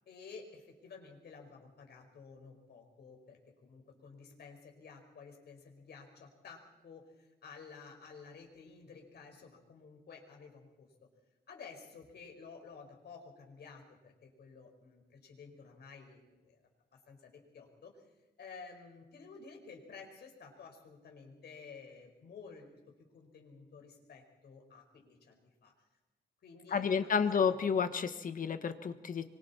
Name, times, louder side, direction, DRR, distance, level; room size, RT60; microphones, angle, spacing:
voice 1, 0.1-10.9 11.5-16.6 17.1-17.9 18.4-22.8 23.1-25.7 26.4-27.6, left 5 dB, 70° left, 1 dB, 4.8 m, -53 dB
voice 2, 26.7-29.2, left 6 dB, 50° left, 9 dB, 1.3 m, -31 dB
25.5 x 24.0 x 4.3 m, 1.0 s
wide cardioid pair, 135°, 18 cm